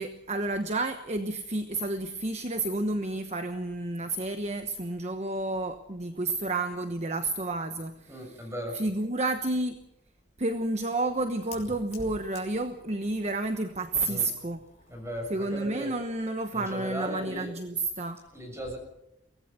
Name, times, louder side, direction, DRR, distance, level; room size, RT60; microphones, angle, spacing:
voice 1, 0.0-8.5 8.7-9.8 10.4-14.6 15.3-18.2, right 2 dB, 35° right, 8 dB, 1.1 m, -30 dB
voice 2, 8.1-8.8 14.0-14.3 14.9-15.9 16.5-17.5 18.3-18.8, equal, 15° right, 3 dB, 7.0 m, -36 dB
Fire, 9.7-15.7, left 2 dB, 40° left, 5.4 m, -51 dB
24.0 x 18.0 x 6.8 m, 0.83 s
head